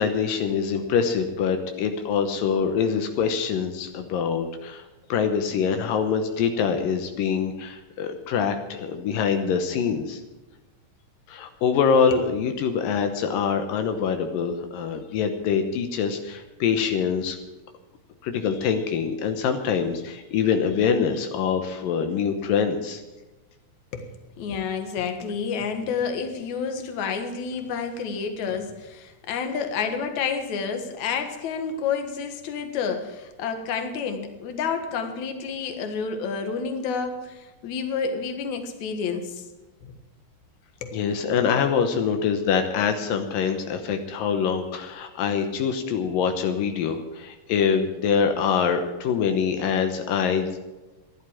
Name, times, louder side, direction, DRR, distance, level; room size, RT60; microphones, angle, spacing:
voice 1, 0.0-4.8 5.1-10.2 11.3-17.4 18.2-23.0 40.9-50.5, left 6 dB, 85° left, 6 dB, 2.8 m, -24 dB
voice 2, 24.4-39.5 39.8-39.9 40.8-41.0, left 6 dB, 60° left, 6 dB, 2.8 m, -29 dB
14.5 x 11.5 x 7.4 m, 1.1 s
omnidirectional pair, 3.9 m